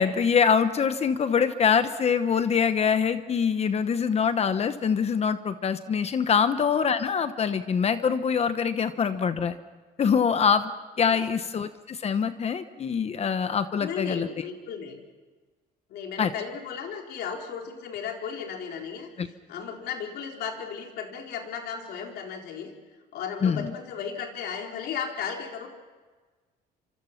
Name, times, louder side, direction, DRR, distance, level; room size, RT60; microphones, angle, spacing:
voice 1, 0.0-9.6 10.0-10.7 11.0-14.3 16.2-16.3 19.2-19.3 23.4-23.7, left 6 dB, 40° left, 11 dB, 1.0 m, -24 dB
voice 2, 13.8-15.0 15.9-19.1 19.5-22.7 23.1-25.7, left 7 dB, 75° left, 1 dB, 4.0 m, -35 dB
26.5 x 26.0 x 5.8 m, 1.4 s
cardioid pair, 110°, 17 cm